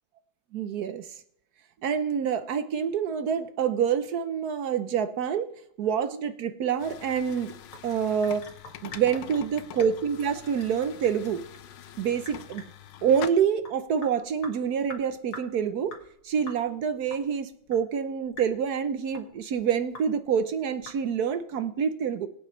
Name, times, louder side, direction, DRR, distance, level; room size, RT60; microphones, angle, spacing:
voice 1, 0.5-1.0 1.8-5.5 5.8-7.5 7.8-8.5 8.8-11.4 12.0-12.6 13.0-16.0 16.2-22.3, right 7 dB, 60° right, 11 dB, 1.1 m, -27 dB
sound 1, 6.8-13.3, left 11 dB, 70° left, 1.3 m, -44 dB
Sink (filling or washing) / Drip, 6.9-21.4, left 2 dB, 45° left, 2.3 m, -48 dB
23.0 x 8.7 x 3.2 m, 0.67 s
omnidirectional pair, 2.2 m